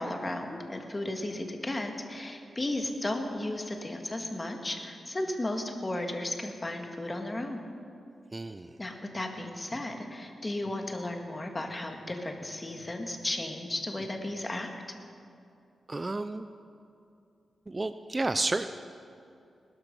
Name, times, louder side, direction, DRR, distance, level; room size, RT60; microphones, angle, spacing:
voice 1, 0.0-7.6 8.8-14.7, left 1 dB, 25° left, 4 dB, 1.9 m, -34 dB
voice 2, 8.3-8.7 15.9-16.5 17.7-18.7, right 2 dB, 25° right, 11 dB, 0.5 m, -31 dB
20.0 x 12.0 x 5.4 m, 2.5 s
cardioid pair, 75°, 0 cm